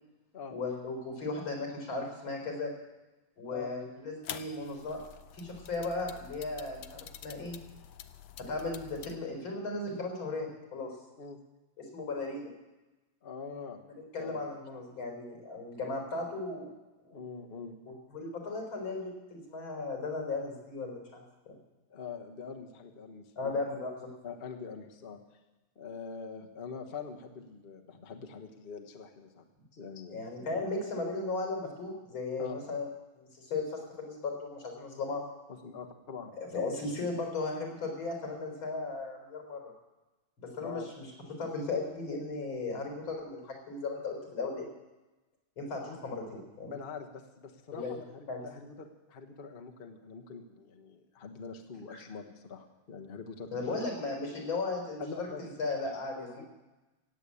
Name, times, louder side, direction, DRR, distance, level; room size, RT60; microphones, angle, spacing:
voice 1, 0.5-2.7 3.4-5.0 5.3-7.6 8.5-10.9 11.8-12.5 14.1-16.7 17.0-17.2 17.9-21.6 23.4-24.1 30.1-32.9 33.2-35.2 36.4-39.7 40.4-44.7 45.6-46.7 47.7-47.9 48.3-48.4 51.9-52.0 53.5-56.5, left 3 dB, 90° left, 2 dB, 4.9 m, -36 dB
sound 1, 4.2-9.2, left 9 dB, 65° left, 1.2 m, -47 dB
voice 2, 13.2-13.8 14.2-14.4 17.1-17.8 21.9-23.5 24.2-25.2 25.7-29.4 29.8-30.2 32.4-32.5 35.5-36.8 40.6-40.9 45.8-46.0 46.7-53.8 55.0-55.4 56.1-56.4, left 5 dB, 35° left, 3 dB, 1.2 m, -44 dB
17.0 x 8.2 x 8.4 m, 1.1 s
omnidirectional pair, 2.2 m